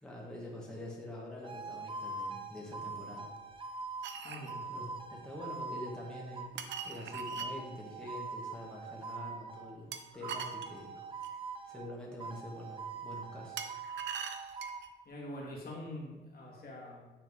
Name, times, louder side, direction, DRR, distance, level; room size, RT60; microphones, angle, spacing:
voice 1, 0.0-3.3 4.7-10.9 11.7-14.0, left 1 dB, 5° left, -4 dB, 1.5 m, -46 dB
sound 1, 1.4-9.7 10.2-11.9 12.2-14.8, right 4 dB, 25° right, 0.7 m, -43 dB
sound 2, 4.0-4.5 6.6-7.5 9.9-11.4 13.6-14.9, right 7 dB, 65° right, 0.6 m, -42 dB
voice 2, 4.2-4.6 15.1-17.1, left 1 dB, 50° left, -3 dB, 2.1 m, -44 dB
9.2 x 3.6 x 3.6 m, 1.2 s
cardioid pair, 90°, 20 cm